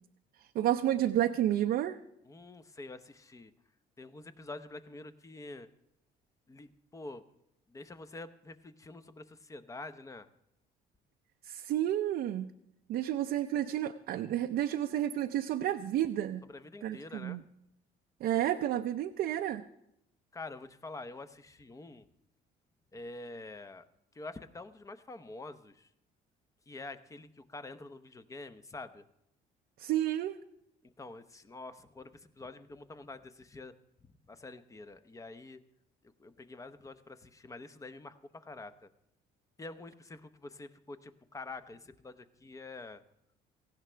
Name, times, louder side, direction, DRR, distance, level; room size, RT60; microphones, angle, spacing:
voice 1, 0.5-2.0 11.4-12.5 12.9-16.4 16.8-17.4 18.2-19.7 29.8-30.4, right 12 dB, 65° right, 5 dB, 0.6 m, -31 dB
voice 2, 2.2-3.5 4.0-5.7 6.5-7.2 7.7-10.3 16.5-17.4 20.3-22.1 22.9-23.8 24.1-25.9 26.7-29.0 30.8-33.7 34.0-35.6 36.0-38.9 39.6-43.0, left 2 dB, 20° left, 11 dB, 0.8 m, -47 dB
17.5 x 15.5 x 3.4 m, 0.80 s
cardioid pair, 110°, 17 cm